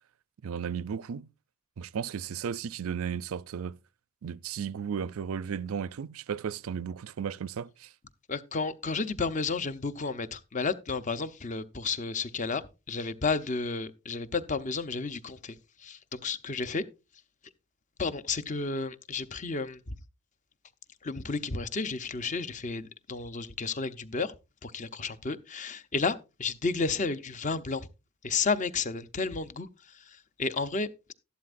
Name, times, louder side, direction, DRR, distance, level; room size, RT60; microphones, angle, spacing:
voice 1, 0.4-1.3 1.8-3.8 4.2-7.9, right 7 dB, 80° right, 0.4 m, -34 dB
voice 2, 8.3-16.9 18.0-20.0 21.0-24.4 24.6-27.9 28.2-31.1, left 4 dB, 35° left, 0.7 m, -32 dB
12.5 x 11.5 x 2.5 m
head